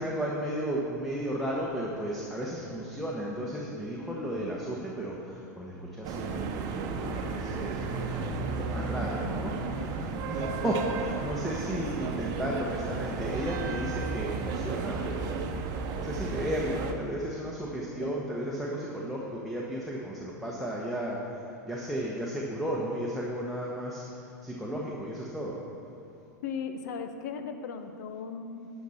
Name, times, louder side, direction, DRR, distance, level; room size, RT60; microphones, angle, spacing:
voice 1, 0.0-9.6 10.2-24.0 24.4-25.6, equal, ahead, -5 dB, 1.1 m, -34 dB
voice 2, 4.0-4.5 10.0-10.1 11.1-11.2 18.0-18.1 26.4-28.7, left 6 dB, 70° left, 8 dB, 0.7 m, -38 dB
sound 1, 6.0-16.9, right 4 dB, 45° right, 0.8 m, -33 dB
11.0 x 5.7 x 4.3 m, 2.8 s
hypercardioid pair, 100°, 10 cm